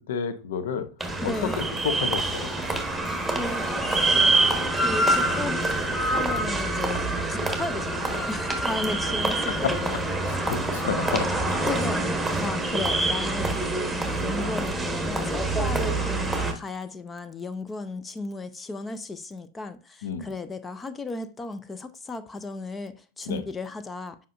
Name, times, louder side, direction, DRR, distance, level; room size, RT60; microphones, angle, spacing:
voice 1, 0.1-0.9 1.2-1.3 1.8-2.5 9.5-11.7 20.0-20.3 23.3-23.4, left 6 dB, 55° left, 0.8 m, -30 dB
sound 1, 1.0-16.5, right 2 dB, 5° right, 1.2 m, -26 dB
sound 2, 1.2-6.3, left 3 dB, 40° left, 1.9 m, -44 dB
voice 2, 1.2-1.6 3.3-4.2 4.7-5.6 6.0-7.0 7.3-10.1 11.0-11.4 11.7-13.6 13.9-24.2, left 3 dB, 15° left, 0.5 m, -35 dB
7.5 x 5.3 x 2.5 m
figure-of-eight pair, 90°, 0 cm